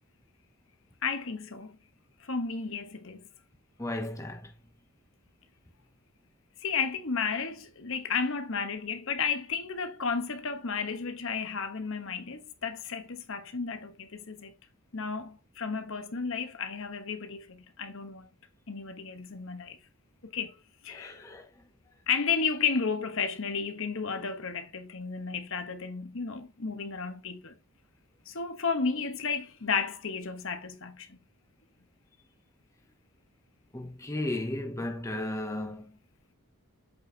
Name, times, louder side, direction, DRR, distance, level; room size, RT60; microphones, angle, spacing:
voice 1, 1.0-1.8 2.2-3.2 6.6-14.5 14.9-18.3 18.7-19.8 20.2-20.5 20.8-21.3 22.1-27.5 28.3-31.2, left 5 dB, 60° left, 1.1 m, -33 dB
voice 2, 3.8-4.5 20.9-21.5 33.7-36.0, left 1 dB, 15° left, 0.9 m, -35 dB
8.3 x 4.0 x 4.4 m
head